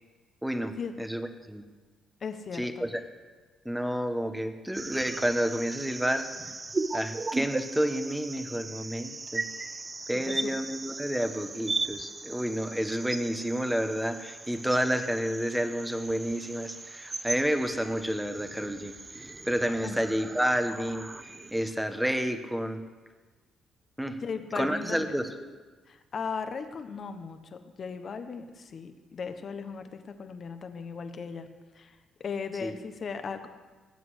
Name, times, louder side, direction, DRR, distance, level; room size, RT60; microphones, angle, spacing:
voice 1, 0.4-1.6 2.5-3.0 3.6-6.3 6.9-9.5 10.1-21.1 21.5-22.8 24.0-24.2 24.5-25.4 32.6-32.7, equal, 5° right, 8 dB, 1.2 m, -30 dB
voice 2, 2.2-2.9 10.1-10.5 19.8-20.0 24.2-25.1 25.9-31.5 31.7-33.5, left 5 dB, 50° left, 8 dB, 1.2 m, -37 dB
sound 1, 4.7-21.7, right 3 dB, 25° right, 0.7 m, -38 dB
19.0 x 7.8 x 6.4 m, 1.3 s
cardioid pair, 90°, 0 cm